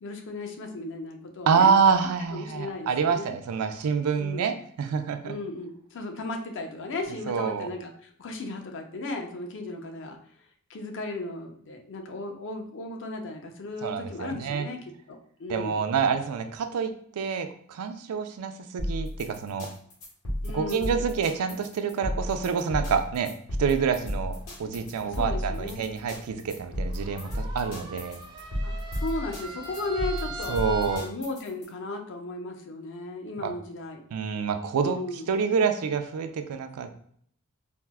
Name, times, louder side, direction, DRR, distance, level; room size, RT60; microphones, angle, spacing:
voice 1, 0.0-1.7 2.3-3.4 4.1-4.5 5.2-10.2 10.7-14.8 15.1-15.8 20.4-21.0 25.0-25.9 28.6-30.6 30.9-34.0 34.8-35.3, left 2 dB, 55° left, 3 dB, 0.5 m, -36 dB
voice 2, 1.5-5.4 7.3-7.7 13.8-14.7 15.5-16.9 17.2-19.7 20.5-23.3 23.6-28.2 30.5-31.0 33.4-33.5 34.1-35.0 35.3-36.9, right 6 dB, 85° right, 8 dB, 0.4 m, -27 dB
sound 1, 18.8-31.6, equal, 70° left, 1.2 m, -33 dB
sound 2, 23.7-31.1, right 1 dB, 20° right, 0.4 m, -43 dB
4.3 x 2.0 x 2.2 m, 0.63 s
head